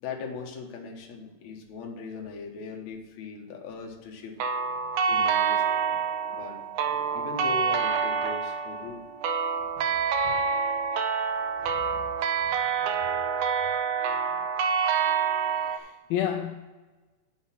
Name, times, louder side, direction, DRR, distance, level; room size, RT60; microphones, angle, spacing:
voice 1, 0.0-4.4 5.1-5.6 6.3-6.6 7.1-9.1 10.2-10.5 11.6-12.0, left 4 dB, 60° left, 2.2 m, -39 dB
sound 1, 4.4-15.8, right 6 dB, 85° right, 1.7 m, -27 dB
voice 2, 15.6-16.6, left 10 dB, 80° left, 2.2 m, -30 dB
8.0 x 6.7 x 5.8 m
omnidirectional pair, 4.4 m